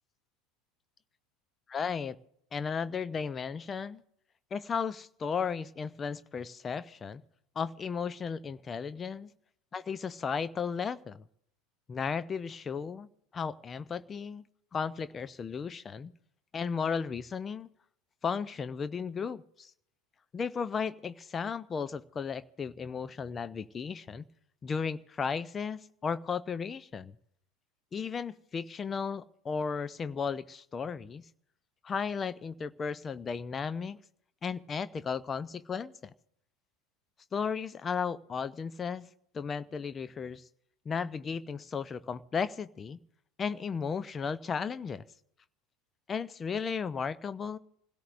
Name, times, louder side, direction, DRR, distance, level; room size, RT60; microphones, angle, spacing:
voice 1, 1.7-2.2 2.5-4.0 4.5-7.2 7.6-9.3 9.7-11.2 11.9-13.1 13.3-14.4 14.7-16.1 16.5-17.7 18.2-19.7 20.3-24.3 24.6-27.1 27.9-31.2 31.8-34.0 34.4-36.1 37.3-39.1 39.3-40.4 40.9-43.0 43.4-45.0 46.1-47.6, left 6 dB, 30° left, 15 dB, 0.7 m, -35 dB
27.5 x 16.5 x 2.6 m, 0.71 s
figure-of-eight pair, 75°, 0 cm